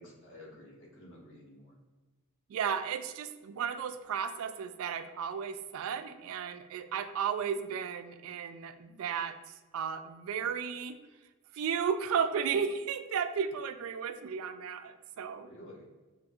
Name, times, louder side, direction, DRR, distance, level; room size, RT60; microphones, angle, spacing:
voice 1, 0.0-1.7 15.4-15.9, left 1 dB, 60° left, -3 dB, 1.2 m, -51 dB
voice 2, 2.5-9.4 9.7-11.0 11.5-15.5, right 7 dB, 70° right, 10 dB, 0.3 m, -34 dB
5.2 x 2.8 x 2.4 m, 1.2 s
head